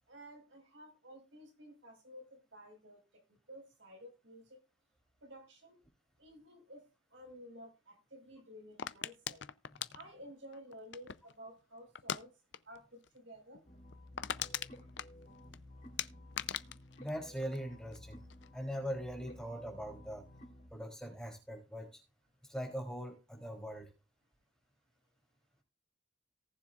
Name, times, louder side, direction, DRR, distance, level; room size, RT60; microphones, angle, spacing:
voice 1, 0.1-3.2 3.5-4.6 5.2-5.8 6.2-6.8 7.1-9.4 9.9-12.3 12.7-13.6, equal, 75° right, 2 dB, 5.0 m, -53 dB
sound 1, 8.8-11.4 12.0-12.2 12.5-12.8 13.0-13.1 13.5-13.6 13.9-15.6 16.0-18.0 18.3-18.8, left 9 dB, 65° left, 0.6 m, -40 dB
sound 2, 13.6-20.7, left 1 dB, 40° left, 3.5 m, -54 dB
voice 2, 17.0-18.3 18.5-20.2 20.7-22.0 22.4-23.9, equal, 5° left, -1 dB, 3.4 m, -41 dB
18.5 x 7.2 x 2.5 m, 0.32 s
head